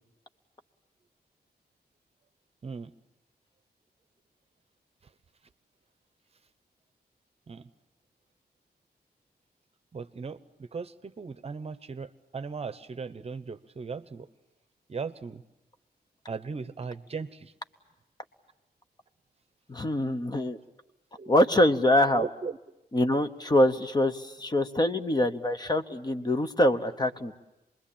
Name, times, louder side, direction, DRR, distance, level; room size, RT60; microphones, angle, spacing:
voice 1, 9.9-14.3 14.9-15.4 16.3-17.5 21.2-21.3 22.1-22.6, right 5 dB, 40° right, 12 dB, 0.8 m, -37 dB
voice 2, 19.7-20.6 21.3-22.3 22.9-27.3, left 1 dB, 25° left, 8 dB, 1.0 m, -24 dB
27.0 x 21.5 x 8.6 m, 0.95 s
wide cardioid pair, 170°, 17 cm